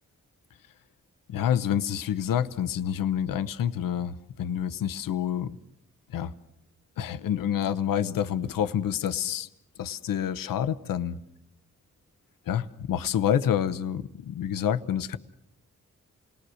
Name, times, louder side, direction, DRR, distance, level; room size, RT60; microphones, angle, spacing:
voice 1, 1.3-5.6 6.1-6.3 7.0-9.5 9.8-11.2 12.5-15.2, left 9 dB, 85° left, 11 dB, 0.8 m, -28 dB
28.5 x 19.0 x 6.3 m, 0.81 s
cardioid pair, 55°, 33 cm